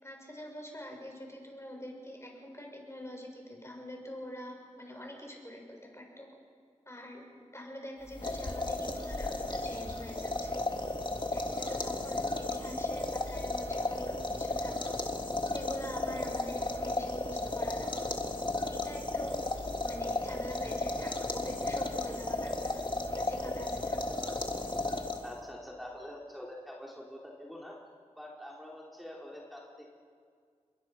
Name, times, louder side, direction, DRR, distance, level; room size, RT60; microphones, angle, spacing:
voice 1, 0.0-6.3 6.9-7.2 7.5-10.6 11.3-15.0 15.5-18.2 18.7-19.3 19.8-22.8 23.1-24.1, equal, 20° left, 0 dB, 6.2 m, -45 dB
sound 1, 8.1-25.5, left 2 dB, 40° left, 2.0 m, -34 dB
voice 2, 25.2-27.8 28.2-29.9, left 1 dB, ahead, -3 dB, 3.8 m, -45 dB
28.5 x 22.0 x 5.8 m, 2.1 s
wide cardioid pair, 55°, 13 cm